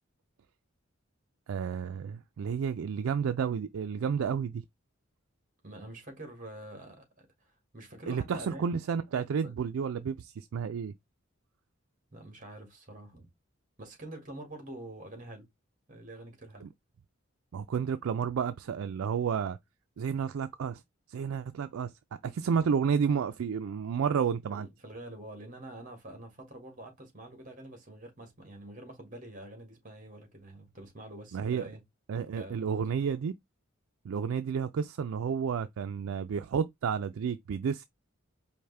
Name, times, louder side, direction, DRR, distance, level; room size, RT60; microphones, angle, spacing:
voice 1, 1.5-4.6 8.1-10.9 16.6-16.7 17.5-19.6 20.0-20.8 21.1-24.7 31.3-31.7 32.1-33.3 34.0-37.9, right 7 dB, 85° right, 0.4 m, -31 dB
voice 2, 5.6-8.8 9.3-9.5 12.1-13.3 13.8-15.5 15.9-16.7 24.5-31.8 32.4-33.1, right 1 dB, 40° right, 1.8 m, -46 dB
4.9 x 2.6 x 3.3 m
head